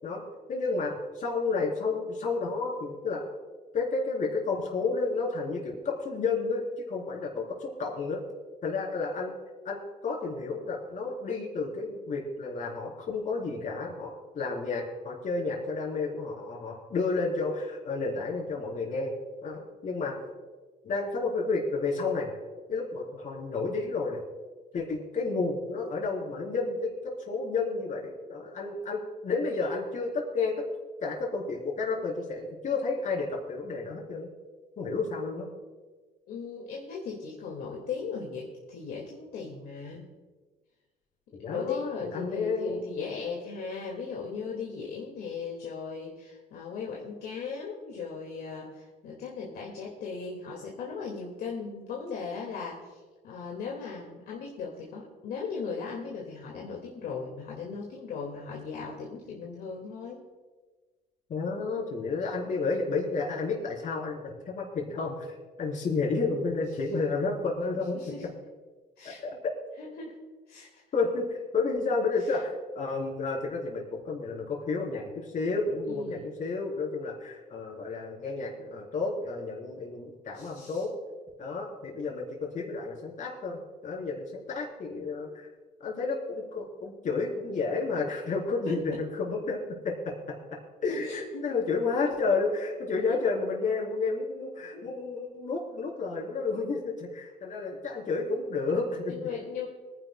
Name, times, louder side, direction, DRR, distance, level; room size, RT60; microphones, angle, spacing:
voice 1, 0.5-3.2 3.7-8.2 8.6-9.3 9.7-19.1 19.4-20.2 20.8-22.4 22.7-24.2 24.7-30.6 31.0-34.3 34.8-35.5 41.3-42.8 61.3-68.0 69.0-69.5 70.9-80.9 81.4-85.5 85.8-90.1 90.8-99.2, left 4 dB, 50° left, 0 dB, 3.8 m, -31 dB
voice 2, 36.3-40.1 41.4-60.2 67.9-68.3 69.0-69.4 69.8-70.2 70.5-70.8 75.9-76.3 80.3-80.8 88.7-88.8 91.1-91.5 94.7-94.9 99.1-99.7, left 5 dB, 65° left, -2 dB, 2.0 m, -38 dB
25.0 x 10.5 x 2.2 m, 1.3 s
cardioid pair, 110°, 17 cm